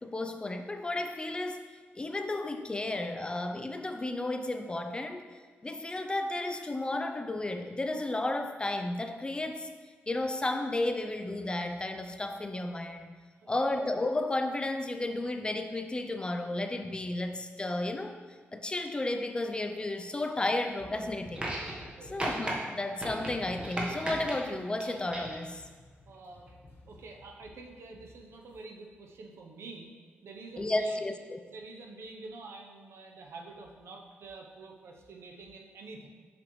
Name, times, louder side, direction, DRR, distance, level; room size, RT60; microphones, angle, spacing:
voice 1, 0.0-1.6 2.0-5.2 5.6-9.7 10.1-13.1 13.5-18.1 18.5-21.5 22.1-25.6 30.6-31.4, left 2 dB, 20° left, 6 dB, 0.4 m, -33 dB
sound 1, 20.7-22.4 23.2-28.6, left 1 dB, 65° left, 1.7 m, -54 dB
sound 2, 21.3-21.9 22.2-22.5 23.0-24.4 24.8-25.4 26.5-26.6, right 1 dB, 25° right, 1.2 m, -35 dB
voice 2, 22.0-22.3 26.1-26.5 26.9-29.9 30.2-31.1 31.5-36.1, right 3 dB, 75° right, 2 dB, 0.8 m, -47 dB
6.9 x 5.0 x 3.1 m, 1.5 s
cardioid pair, 95°, 4 cm